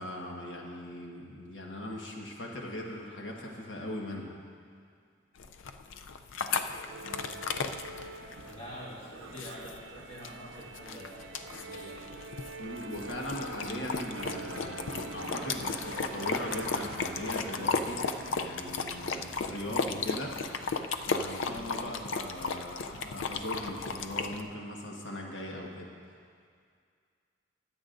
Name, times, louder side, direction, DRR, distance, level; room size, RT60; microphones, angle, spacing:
voice 1, 0.0-4.4 11.5-11.8 12.6-18.1 18.4-20.3 20.9-25.9, left 1 dB, 70° left, -1 dB, 1.4 m, -39 dB
sound 1, 5.4-24.4, left 4 dB, 90° left, 0.5 m, -35 dB
Musical instrument, 6.9-21.5, right 3 dB, 85° right, 0.5 m, -46 dB
voice 2, 8.2-12.0, equal, 35° left, -7 dB, 2.5 m, -46 dB
sound 2, 15.2-24.0 24.4-24.5, right 2 dB, 50° right, 0.9 m, -50 dB
23.0 x 8.5 x 2.6 m, 2.2 s
head